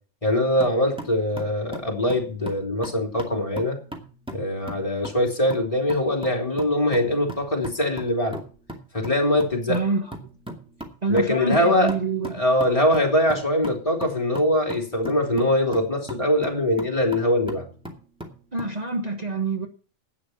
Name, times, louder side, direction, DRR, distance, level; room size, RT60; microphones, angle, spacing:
voice 1, 0.2-3.8 4.3-8.4 8.9-9.8 11.1-11.9 12.3-17.7, left 1 dB, 30° left, 3.3 m, -22 dB
sound 1, 0.6-18.8, right 1 dB, 5° right, 2.3 m, -40 dB
voice 2, 9.7-10.1 11.0-12.3 18.5-19.7, right 3 dB, 35° right, 1.2 m, -26 dB
11.5 x 9.3 x 5.8 m
omnidirectional pair, 1.2 m